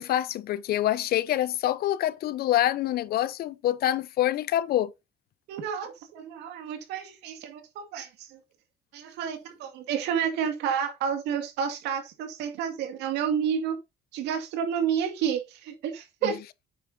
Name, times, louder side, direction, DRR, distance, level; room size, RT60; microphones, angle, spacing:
voice 1, 0.0-4.9 16.2-16.3, left 13 dB, 65° left, 0.7 m, -26 dB
voice 2, 5.5-8.3 8.9-13.8 14.1-16.4, right 8 dB, 85° right, 2.3 m, -30 dB
8.9 x 7.4 x 2.7 m
cardioid pair, 110°, 17 cm